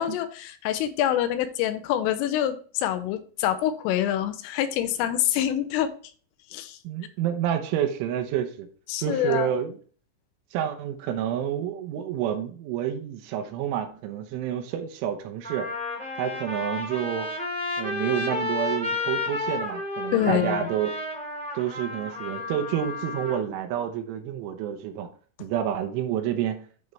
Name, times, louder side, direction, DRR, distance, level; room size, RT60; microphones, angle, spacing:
voice 1, 0.0-5.9 6.5-6.8 8.9-9.5 20.1-20.7, left 11 dB, 90° left, 10 dB, 3.4 m, -26 dB
voice 2, 6.8-8.7 9.0-9.7 10.5-15.7 16.2-17.3 17.8-20.9 21.5-25.1 25.4-26.6, right 10 dB, 80° right, 6 dB, 3.2 m, -29 dB
Trumpet, 14.7-14.8 15.4-23.4, left 2 dB, ahead, 1.6 m, -32 dB
12.0 x 4.7 x 3.2 m, 0.43 s
omnidirectional pair, 5.7 m